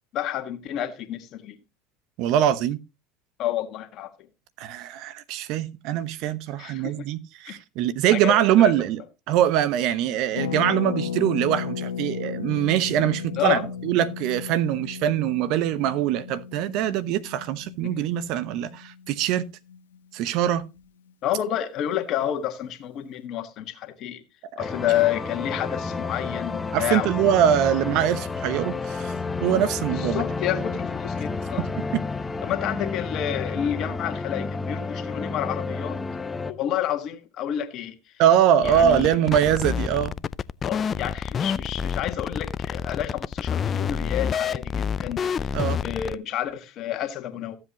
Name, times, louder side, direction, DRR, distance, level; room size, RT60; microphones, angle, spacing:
voice 1, 0.1-1.6 3.4-4.1 6.6-7.1 7.5-7.6 8.1-8.7 13.4-13.7 18.0-18.1 21.2-24.2 24.6-27.1 29.9-31.7 32.4-36.0 36.5-38.0 38.6-39.1 40.6-45.5 45.8-47.6, left 11 dB, 50° left, 1.6 m, -29 dB
voice 2, 2.2-2.8 4.6-9.0 9.3-19.4 20.1-20.6 26.7-29.1 29.4-30.2 31.9-32.0 38.2-40.1 45.5-45.8, right 10 dB, 60° right, 0.9 m, -23 dB
Harp, 10.3-20.0 20.2-20.3 20.5-20.8, left 7 dB, 80° left, 0.8 m, -35 dB
sound 1, 24.6-36.5, left 4 dB, 15° left, 0.9 m, -31 dB
sound 2, 38.6-46.1, left 7 dB, 35° left, 0.4 m, -28 dB
14.5 x 7.8 x 2.9 m
hypercardioid pair, 80°, 0 cm